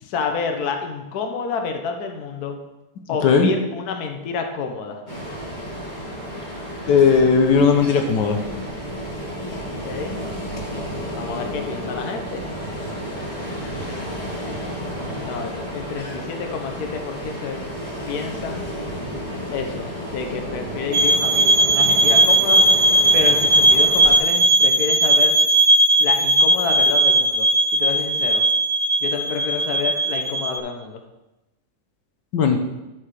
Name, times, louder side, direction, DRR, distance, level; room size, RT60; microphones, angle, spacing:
voice 1, 0.0-2.6 3.1-5.0 9.8-10.2 11.1-12.4 15.1-17.6 18.1-18.6 19.5-22.6 23.1-25.4 26.0-28.5 29.0-31.0, left 5 dB, 65° left, 4 dB, 1.4 m, -29 dB
Ocean, 5.1-24.2, equal, 25° left, 2.8 m, -32 dB
voice 2, 6.9-8.4 32.3-32.6, left 5 dB, 85° left, 4 dB, 1.6 m, -16 dB
sound 1, 20.9-30.6, right 1 dB, 45° right, 1.0 m, -17 dB
12.0 x 4.8 x 4.8 m, 0.98 s
omnidirectional pair, 1.8 m